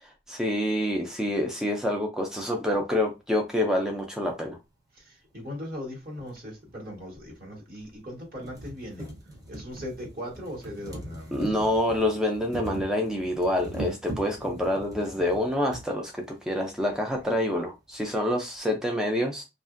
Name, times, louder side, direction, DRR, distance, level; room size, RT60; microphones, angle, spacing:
voice 1, 0.0-4.6 11.3-19.4, left 1 dB, 5° right, 0.3 m, -27 dB
voice 2, 4.9-9.1 9.5-11.5, equal, 55° right, 1.3 m, -39 dB
sound 1, 6.3-6.4 7.4-7.5 7.9-8.0 8.3-15.9 16.8-16.9 17.1-17.2, right 1 dB, 20° right, 0.7 m, -40 dB
2.8 x 2.4 x 2.4 m
head